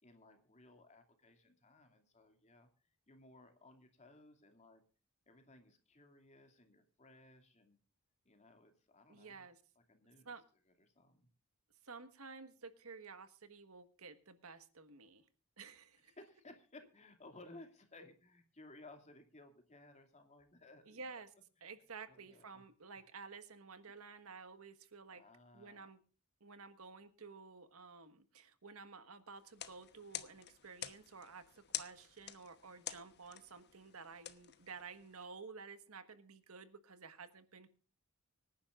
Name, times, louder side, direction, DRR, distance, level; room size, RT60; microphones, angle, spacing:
voice 1, 0.0-2.7 3.1-4.8 5.3-7.8 8.2-9.5 9.9-10.3 10.8-11.3 16.1-21.1 21.6-21.7 22.1-22.6 25.1-25.9, left 2 dB, 30° left, 6 dB, 2.6 m, -60 dB
voice 2, 9.1-9.6 10.2-10.4 11.8-15.2 15.6-16.1 20.9-21.3 21.6-25.2 25.5-26.0 26.4-37.7, right 4 dB, 80° right, 11 dB, 1.6 m, -53 dB
sound 1, 29.4-35.2, left 11 dB, 50° left, 1.1 m, -49 dB
25.0 x 10.5 x 2.5 m, 0.37 s
head